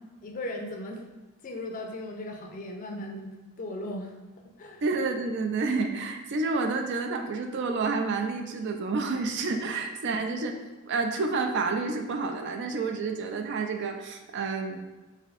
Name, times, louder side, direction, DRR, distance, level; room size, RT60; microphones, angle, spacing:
voice 1, 0.2-1.0 1.4-4.2 4.6-4.8, left 1 dB, 35° left, 2 dB, 0.4 m, -37 dB
voice 2, 4.8-10.6 10.8-14.8, right 3 dB, 55° right, 5 dB, 0.4 m, -29 dB
5.0 x 2.7 x 2.4 m, 1.1 s
head